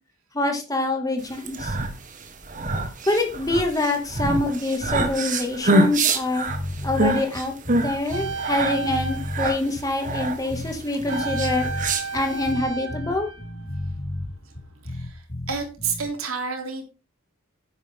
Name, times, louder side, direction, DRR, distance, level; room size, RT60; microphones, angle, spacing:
voice 1, 0.3-1.8 3.1-6.5 6.8-11.7 12.1-13.3, left 2 dB, 15° left, 3 dB, 2.1 m, -25 dB
sound 1, 1.3-12.5, right 2 dB, 40° right, 1.6 m, -26 dB
sound 2, 6.5-16.1, left 1 dB, 50° left, 3.6 m, -33 dB
sound 3, 8.1-10.2 11.1-14.2 14.5-14.6, right 4 dB, 70° right, 2.5 m, -33 dB
voice 2, 14.8-16.9, right 5 dB, 90° right, 3 dB, 3.3 m, -30 dB
11.0 x 9.3 x 3.7 m, 0.32 s
head